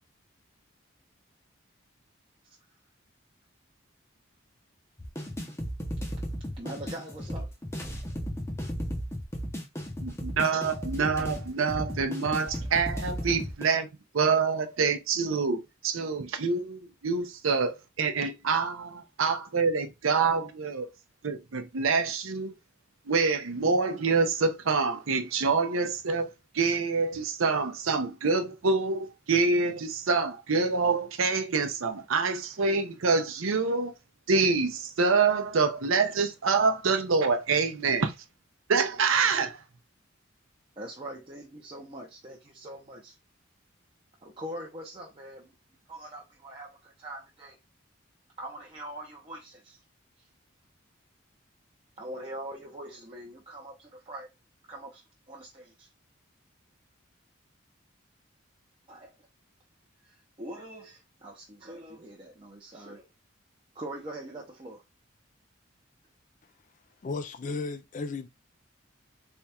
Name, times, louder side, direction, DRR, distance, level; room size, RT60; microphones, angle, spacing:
sound 1, 5.0-13.6, equal, 15° left, 0.7 m, -35 dB
voice 1, 6.6-7.5 40.8-43.2 44.2-45.6 45.9-47.6 48.4-49.8 50.2-50.3 52.0-54.3 54.7-55.9 58.9-59.1 60.0-63.1 63.7-64.8, right 1 dB, 25° right, 0.6 m, -43 dB
voice 2, 10.0-13.9 14.1-20.9 21.2-22.5 23.1-26.3 26.5-33.9 34.3-38.1 38.7-39.6, right 4 dB, 85° right, 0.6 m, -26 dB
voice 3, 67.0-68.3, left 4 dB, 40° left, 0.3 m, -34 dB
3.4 x 2.3 x 4.2 m
head